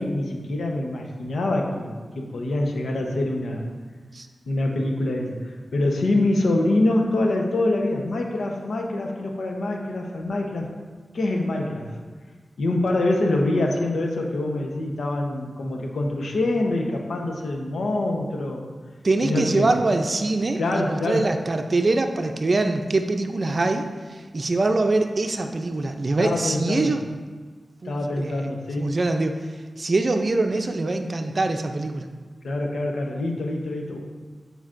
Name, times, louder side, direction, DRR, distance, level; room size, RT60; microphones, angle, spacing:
voice 1, 0.0-3.7 4.5-10.7 11.1-11.9 12.6-18.7 19.2-19.7 20.6-21.2 26.2-26.9 27.8-28.9 32.4-34.0, left 2 dB, 90° left, 1 dB, 0.9 m, -25 dB
voice 2, 19.0-27.0 27.8-28.5 28.8-29.4 29.8-32.1, right 2 dB, 50° right, 5 dB, 0.5 m, -24 dB
11.5 x 4.9 x 2.6 m, 1.4 s
cardioid pair, 65°, 0 cm